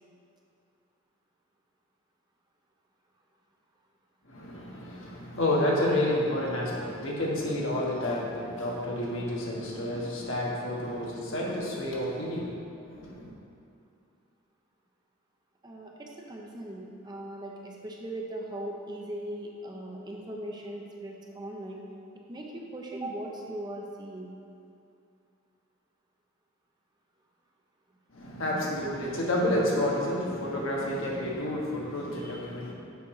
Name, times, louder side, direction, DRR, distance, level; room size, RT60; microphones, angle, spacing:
voice 1, 4.3-12.5 12.9-13.3 28.1-32.7, left 1 dB, 70° left, -3 dB, 1.4 m, -30 dB
voice 2, 15.6-21.8 22.1-24.4, right 1 dB, 20° right, -1 dB, 0.6 m, -39 dB
7.0 x 5.2 x 4.7 m, 2.5 s
head